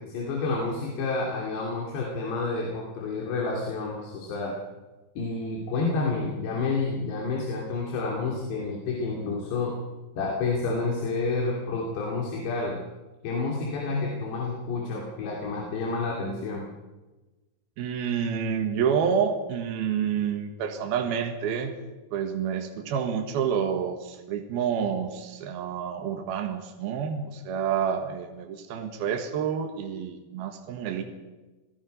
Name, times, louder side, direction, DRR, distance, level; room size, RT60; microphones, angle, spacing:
voice 1, 0.0-4.5 5.2-9.7 10.2-12.8 13.2-16.7, left 3 dB, 85° left, -2 dB, 4.9 m, -29 dB
voice 2, 17.8-21.7 22.1-31.0, right 7 dB, 70° right, 4 dB, 3.4 m, -28 dB
27.5 x 18.5 x 5.5 m, 1.2 s
omnidirectional pair, 4.8 m